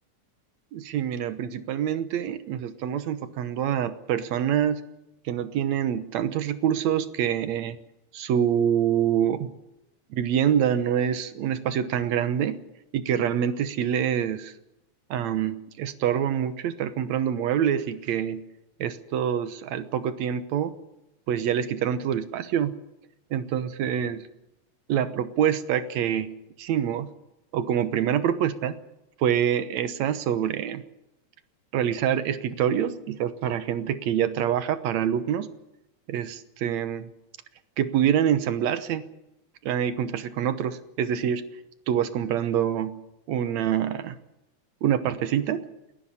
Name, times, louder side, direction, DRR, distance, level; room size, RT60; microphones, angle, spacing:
voice 1, 0.7-4.8 5.3-7.8 8.1-9.5 10.1-12.6 12.9-14.5 15.1-18.4 18.8-20.7 21.3-22.7 23.3-24.3 24.9-27.1 27.5-28.8 29.2-30.8 31.7-35.5 36.1-37.1 37.8-39.0 39.6-41.4 41.9-43.0 43.3-44.2 44.8-45.6, right 9 dB, 70° right, 12 dB, 2.2 m, -26 dB
29.5 x 10.5 x 9.9 m, 0.92 s
omnidirectional pair, 3.5 m